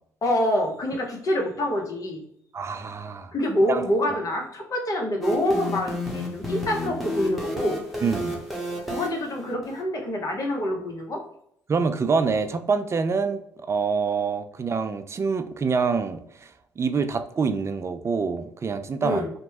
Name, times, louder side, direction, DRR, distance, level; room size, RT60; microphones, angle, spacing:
voice 1, 0.2-2.2 3.3-7.8 8.9-11.2 19.0-19.3, left 1 dB, 45° left, 1 dB, 0.9 m, -26 dB
voice 2, 2.5-3.3 3.7-3.9 8.0-8.4 11.7-13.4 13.7-16.5 16.8-19.3, right 5 dB, 35° right, 9 dB, 0.4 m, -26 dB
sound 1, 5.2-9.8, left 1 dB, ahead, 1.0 m, -31 dB
2.9 x 2.2 x 2.8 m, 0.72 s
hypercardioid pair, 50°, 8 cm